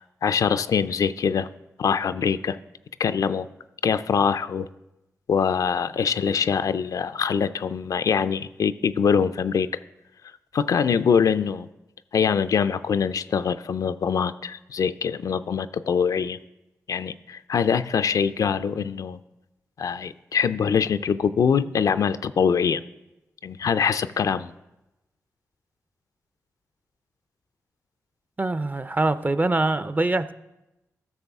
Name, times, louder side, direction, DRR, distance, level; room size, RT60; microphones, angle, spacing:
voice 1, 0.2-1.5 1.8-2.6 3.0-3.5 3.8-4.7 5.3-9.7 10.5-11.7 12.1-16.4 16.9-19.2 19.8-22.8 23.4-24.5, left 6 dB, 70° left, 12 dB, 0.3 m, -23 dB
voice 2, 28.4-30.3, right 2 dB, 25° right, 13 dB, 0.5 m, -24 dB
13.5 x 6.5 x 3.5 m, 0.94 s
cardioid pair, 50°, 6 cm